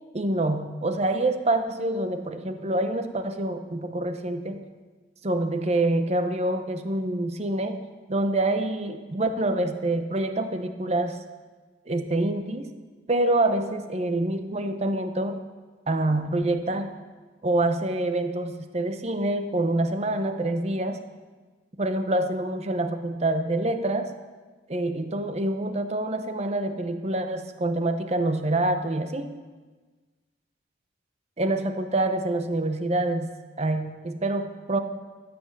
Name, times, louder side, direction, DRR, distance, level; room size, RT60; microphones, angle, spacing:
voice 1, 0.1-4.6 5.2-7.8 8.1-11.2 11.9-12.7 13.1-15.4 15.9-16.9 17.4-21.0 21.8-24.1 24.7-29.3 31.4-33.3 33.6-34.8, right 2 dB, 35° right, 8 dB, 0.8 m, -26 dB
15.0 x 6.1 x 7.4 m, 1.3 s
head